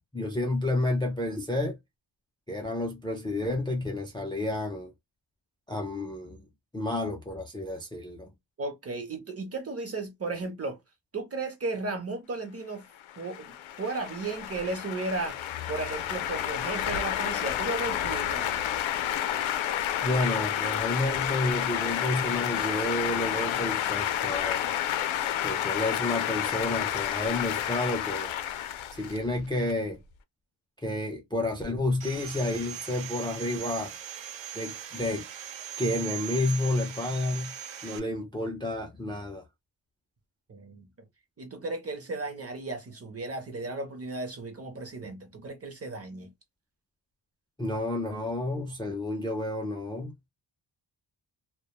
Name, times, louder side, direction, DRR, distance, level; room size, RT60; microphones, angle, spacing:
voice 1, 0.1-1.8 2.5-4.9 5.7-6.4 6.7-8.3 20.0-24.7 25.4-28.3 28.9-30.0 30.8-33.9 34.5-35.3 35.8-37.5 37.8-39.4 47.6-50.1, left 2 dB, 10° left, 0.4 m, -30 dB
voice 2, 8.6-10.8 11.1-12.8 13.2-18.6 40.5-40.9 41.4-46.3, right 3 dB, 30° right, 0.7 m, -35 dB
sound 1, 13.0-29.7, left 11 dB, 80° left, 0.5 m, -30 dB
Sawing, 32.0-38.0, right 10 dB, 70° right, 0.6 m, -39 dB
2.2 x 2.0 x 2.8 m
wide cardioid pair, 160°, 46 cm